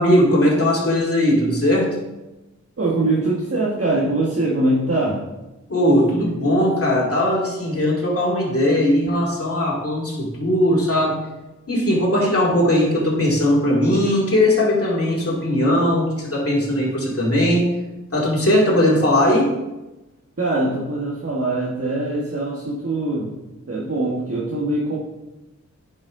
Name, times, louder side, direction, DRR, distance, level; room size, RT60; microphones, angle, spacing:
voice 1, 0.0-1.9 5.7-11.2 11.7-17.7 18.1-19.5, left 1 dB, 50° left, -4 dB, 2.3 m, -19 dB
voice 2, 2.8-5.2 20.4-23.3 23.7-25.0, right 2 dB, 50° right, -5 dB, 1.4 m, -22 dB
9.6 x 5.3 x 3.7 m, 1.0 s
wide cardioid pair, 65°, 31 cm